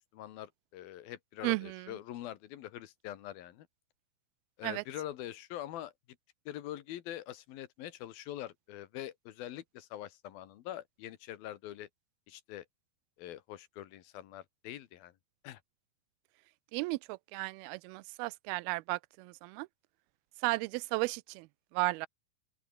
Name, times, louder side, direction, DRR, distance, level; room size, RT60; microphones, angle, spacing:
voice 1, 0.0-3.7 4.6-5.9 6.5-11.9 12.3-12.6 13.2-15.1 15.4-15.6, left 13 dB, 75° left, 3.1 m, -44 dB
voice 2, 1.4-1.9 4.6-4.8 16.7-19.7 20.4-21.5 21.7-22.1, right 23 dB, 85° right, 2.5 m, -34 dB
open air
omnidirectional pair, 4.4 m